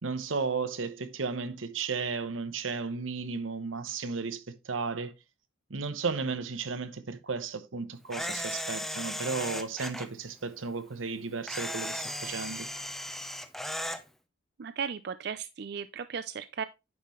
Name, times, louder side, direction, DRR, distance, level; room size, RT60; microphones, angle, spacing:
voice 1, 0.0-5.1 5.7-12.7, right 4 dB, 85° right, 0.9 m, -34 dB
Camera, 8.1-10.1 11.5-14.0, equal, ahead, 0.6 m, -36 dB
voice 2, 14.6-16.6, right 6 dB, 55° right, 0.4 m, -36 dB
9.4 x 5.6 x 3.1 m
head